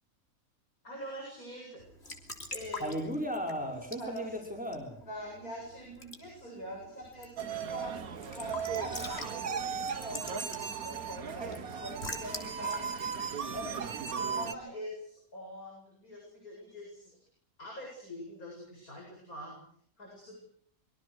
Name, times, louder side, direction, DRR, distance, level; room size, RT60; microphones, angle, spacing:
voice 1, 0.8-1.8 2.5-2.9 3.6-4.3 5.0-13.2 13.5-17.1 17.6-19.5 20.0-20.4, equal, 80° left, -1 dB, 8.5 m, -44 dB
Raindrop / Drip / Trickle dribble, 1.8-14.3, left 2 dB, 45° left, 3.7 m, -47 dB
voice 2, 2.8-5.0, equal, 5° right, 1 dB, 5.6 m, -35 dB
sound 1, 7.4-14.5, right 6 dB, 85° right, 1.8 m, -36 dB
25.5 x 23.5 x 6.6 m, 0.62 s
omnidirectional pair, 1.5 m